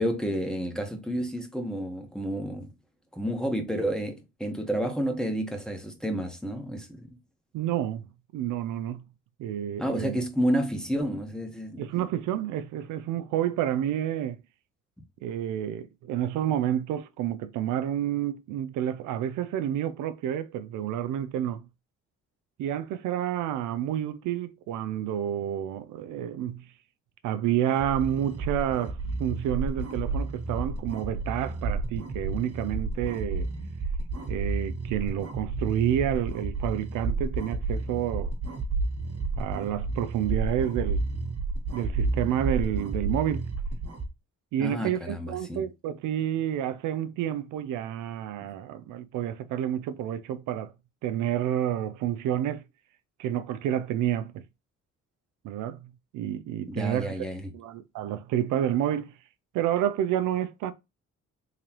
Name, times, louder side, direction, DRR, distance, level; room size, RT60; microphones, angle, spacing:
voice 1, 0.0-2.7 3.1-7.1 9.8-12.0 44.6-45.6 48.4-48.5 56.7-57.5, equal, ahead, 1.1 m, -30 dB
voice 2, 7.5-8.1 8.3-9.0 9.4-10.2 11.8-14.4 15.2-21.6 22.6-26.7 27.2-33.5 34.3-38.3 39.4-41.0 41.7-43.5 44.5-50.7 51.0-52.6 53.2-54.4 55.4-57.3 57.5-59.1 59.5-60.7, right 10 dB, 85° right, 0.5 m, -29 dB
sound 1, 27.7-44.1, right 3 dB, 55° right, 1.3 m, -31 dB
3.7 x 3.2 x 2.9 m
cardioid pair, 90°, 30 cm